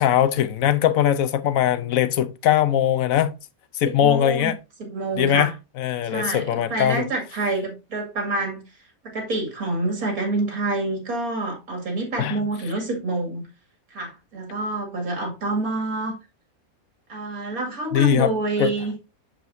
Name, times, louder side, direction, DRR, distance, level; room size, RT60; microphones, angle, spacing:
voice 1, 0.0-3.3 3.7-4.6 5.2-5.5 5.8-7.1 12.2-12.4 17.9-18.3 18.6-18.7, left 10 dB, 75° left, 1.1 m, -20 dB
voice 2, 3.9-4.5 4.8-5.5 6.0-8.6 9.0-13.4 13.9-16.2 17.1-18.9, right 2 dB, 80° right, 2.7 m, -27 dB
7.7 x 7.1 x 2.6 m
omnidirectional pair, 1.5 m